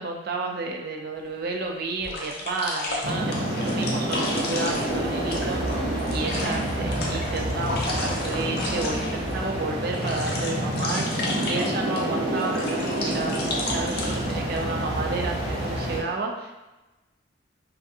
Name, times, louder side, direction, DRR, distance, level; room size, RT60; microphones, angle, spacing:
voice 1, 0.0-5.6 6.1-11.1 11.4-13.3 13.6-16.5, right 3 dB, 55° right, 2 dB, 0.3 m, -31 dB
sound 1, 1.3-1.4 2.0-9.3 9.7-12.0 12.4-14.6, left 2 dB, 55° left, 0.5 m, -33 dB
sound 2, 3.0-16.0, right 1 dB, 80° right, 1.0 m, -28 dB
2.4 x 2.3 x 2.7 m, 1.1 s
head